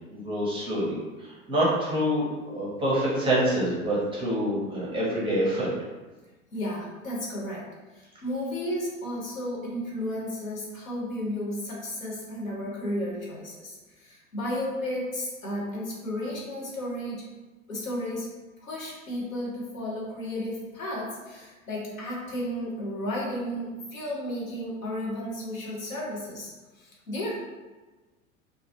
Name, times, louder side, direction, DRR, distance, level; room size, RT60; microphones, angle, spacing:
voice 1, 0.1-5.7, right 1 dB, 15° right, -6 dB, 0.5 m, -26 dB
voice 2, 6.5-7.6 7.9-17.3 17.7-18.3 18.6-27.3, left 1 dB, 80° left, -4 dB, 0.9 m, -33 dB
2.3 x 2.0 x 2.7 m, 1.2 s
figure-of-eight pair, 90°, 40 cm